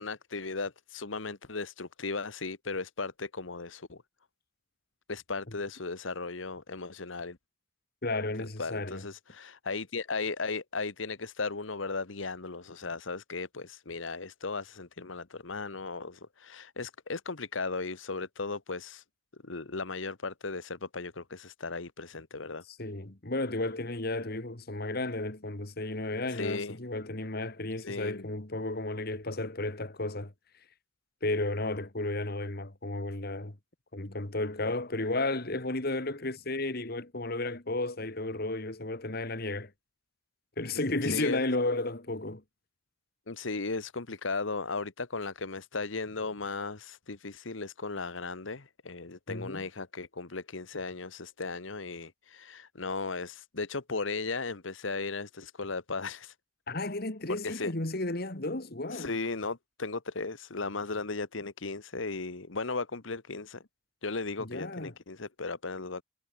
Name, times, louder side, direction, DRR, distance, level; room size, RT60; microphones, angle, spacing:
voice 1, 0.0-4.0 5.1-7.4 8.4-19.0 19.4-22.6 26.3-26.8 27.8-28.2 41.1-41.4 43.3-56.3 57.3-57.7 58.9-63.6 64.0-66.0, left 3 dB, 85° left, 1.5 m, -36 dB
voice 2, 8.0-9.1 22.8-30.3 31.2-33.6 33.9-39.7 40.6-42.4 49.3-49.6 56.7-59.1 64.4-64.9, left 2 dB, 50° left, 2.2 m, -33 dB
head